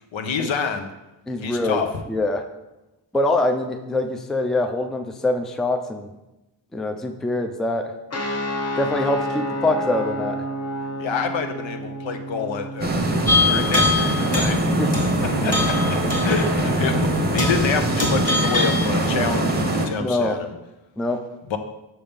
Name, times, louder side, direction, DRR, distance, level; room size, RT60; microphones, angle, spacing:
voice 1, 0.1-0.9 1.4-1.9 11.0-14.6 15.4-15.7 16.2-20.5 21.5-21.6, left 6 dB, 80° left, 6 dB, 0.7 m, -27 dB
voice 2, 1.3-1.8 2.1-2.4 3.1-6.1 6.7-7.9 8.8-10.5 14.8-14.9 20.0-20.4 21.0-21.2, left 2 dB, ahead, 6 dB, 0.3 m, -24 dB
sound 1, 8.1-17.1, equal, 35° left, 0.8 m, -32 dB
sound 2, 12.8-19.9, right 1 dB, 20° right, 0.7 m, -22 dB
sound 3, 13.3-14.6 14.9-15.2 15.5-16.6 16.9-17.0 17.4-17.7 18.0-18.9, left 3 dB, 20° left, 1.3 m, -23 dB
5.7 x 5.5 x 3.5 m, 0.99 s
wide cardioid pair, 100°, 45 cm